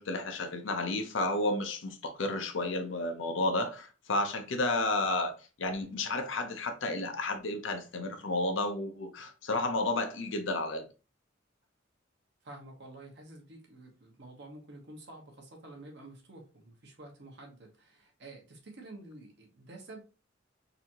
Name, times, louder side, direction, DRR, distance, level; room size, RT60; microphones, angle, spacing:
voice 1, 0.0-5.3 5.6-10.8, left 2 dB, 70° left, 0.7 m, -32 dB
voice 2, 12.4-20.0, right 2 dB, 60° right, 1.3 m, -49 dB
4.0 x 2.8 x 2.9 m
head